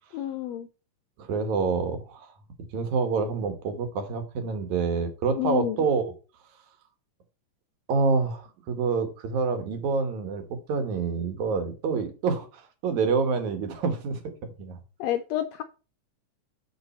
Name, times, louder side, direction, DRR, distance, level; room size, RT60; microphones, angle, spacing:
voice 1, 0.1-0.7 5.3-5.8 15.0-15.6, left 13 dB, 85° left, 9 dB, 1.5 m, -29 dB
voice 2, 1.2-2.3 2.7-6.1 7.9-14.8, right 4 dB, 70° right, 8 dB, 2.6 m, -27 dB
7.0 x 6.8 x 4.3 m, 0.33 s
omnidirectional pair, 3.6 m